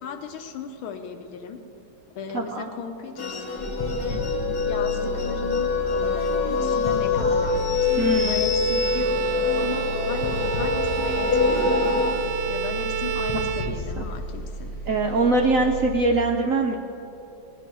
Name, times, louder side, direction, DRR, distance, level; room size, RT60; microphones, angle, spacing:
voice 1, 0.0-1.6 2.2-3.5 4.0-4.2 4.7-9.1 9.5-14.7, left 5 dB, 85° left, 6 dB, 1.7 m, -36 dB
voice 2, 2.3-2.7 8.0-8.4 14.0-14.1 14.9-16.8, right 2 dB, 65° right, 2 dB, 0.8 m, -22 dB
sound 1, 3.2-12.1, left 4 dB, 55° left, 1.8 m, -24 dB
sound 2, 3.6-16.0, equal, 35° left, 4.4 m, -34 dB
Bowed string instrument, 7.5-14.3, right 10 dB, 90° right, 1.5 m, -31 dB
18.5 x 10.0 x 4.6 m, 2.8 s
omnidirectional pair, 2.2 m